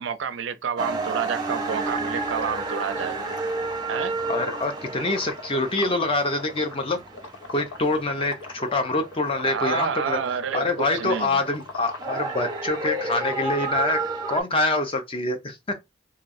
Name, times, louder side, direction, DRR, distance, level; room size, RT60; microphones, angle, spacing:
voice 1, 0.0-3.2 3.9-4.1 9.4-11.4, right 6 dB, 65° right, 0.4 m, -29 dB
sound 1, 0.8-6.8 7.1-13.7, left 3 dB, 90° left, 0.6 m, -41 dB
sound 2, 0.8-14.4, right 3 dB, 20° right, 0.6 m, -32 dB
voice 2, 4.3-7.0 7.5-10.2 10.5-14.0 14.3-15.7, left 2 dB, 30° left, 0.5 m, -25 dB
3.0 x 2.3 x 2.5 m
head